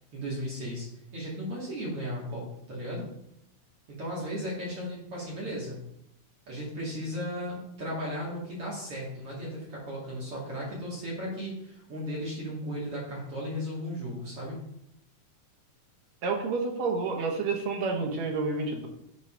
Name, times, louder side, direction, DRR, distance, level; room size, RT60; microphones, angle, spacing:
voice 1, 0.1-3.1 3.9-5.8 6.5-14.6, equal, 50° right, -5 dB, 2.5 m, -35 dB
voice 2, 16.2-18.9, right 4 dB, 65° right, 1 dB, 2.2 m, -29 dB
10.0 x 4.0 x 4.9 m, 0.77 s
omnidirectional pair, 3.8 m